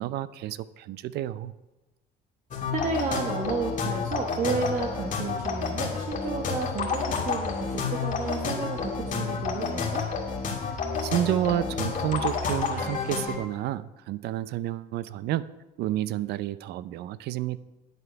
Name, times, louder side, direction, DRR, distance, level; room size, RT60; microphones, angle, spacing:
voice 1, 0.0-1.5 11.0-15.5 15.8-17.6, right 13 dB, 75° right, 17 dB, 0.5 m, -30 dB
sound 1, 2.5-13.4, left 5 dB, 50° left, 2.0 m, -30 dB
voice 2, 2.7-10.0, right 4 dB, 45° right, 2 dB, 1.2 m, -32 dB
9.9 x 8.0 x 5.7 m, 1.1 s
cardioid pair, 110°, 17 cm